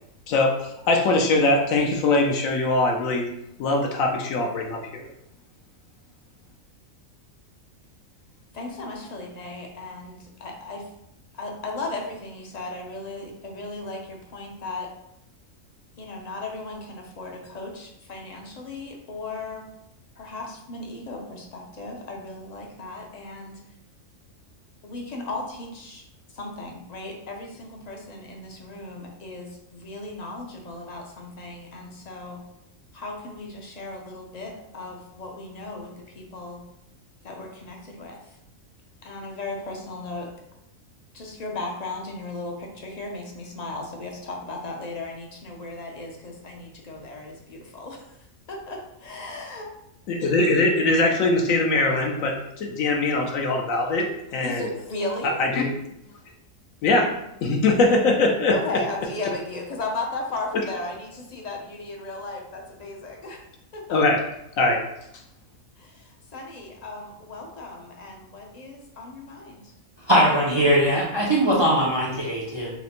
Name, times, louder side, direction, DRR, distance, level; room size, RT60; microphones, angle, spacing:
voice 1, 0.3-3.3 3.6-5.1 50.1-54.1 54.3-54.6 55.2-55.7 56.8-57.1 57.4-58.5 63.9-64.2 64.6-64.8, left 2 dB, 75° left, 1 dB, 1.0 m, -21 dB
voice 2, 8.5-10.9 11.3-14.9 16.0-19.7 20.2-23.6 24.8-26.0 26.3-32.4 32.9-36.6 37.2-38.4 39.0-40.3 41.1-48.2 48.5-49.7 54.4-55.4 58.5-63.4 63.7-64.0 65.8-69.7, left 2 dB, 50° left, 0 dB, 0.5 m, -36 dB
voice 3, 70.1-72.7, equal, 45° right, -4 dB, 0.3 m, -20 dB
5.6 x 2.1 x 2.9 m, 0.81 s
omnidirectional pair, 1.4 m